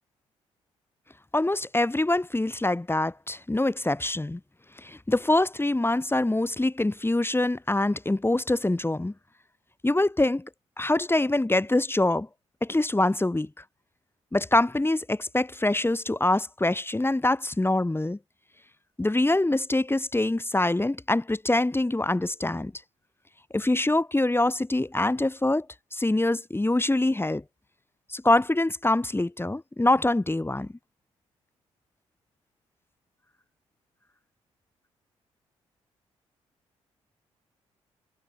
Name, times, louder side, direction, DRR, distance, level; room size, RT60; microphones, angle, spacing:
voice 1, 1.3-4.4 4.8-9.1 9.8-10.5 10.8-12.3 12.6-13.5 14.3-18.2 19.0-22.7 23.5-25.7 25.9-27.4 28.1-30.7, left 2 dB, 15° left, 3.4 m, -24 dB
figure-of-eight pair, 40°, 15 cm